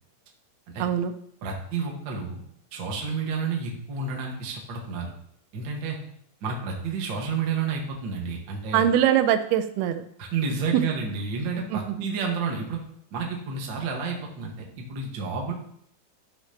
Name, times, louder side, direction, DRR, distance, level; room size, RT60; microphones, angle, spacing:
voice 1, 0.8-1.1 8.7-10.0 10.7-10.8 11.7-12.1, right 10 dB, 90° right, 9 dB, 2.6 m, -22 dB
voice 2, 1.4-2.4 2.7-5.1 5.5-6.0 6.4-8.8 10.2-12.8 13.1-15.5, right 5 dB, 50° right, 0 dB, 1.4 m, -30 dB
13.5 x 5.8 x 2.9 m, 0.69 s
omnidirectional pair, 4.3 m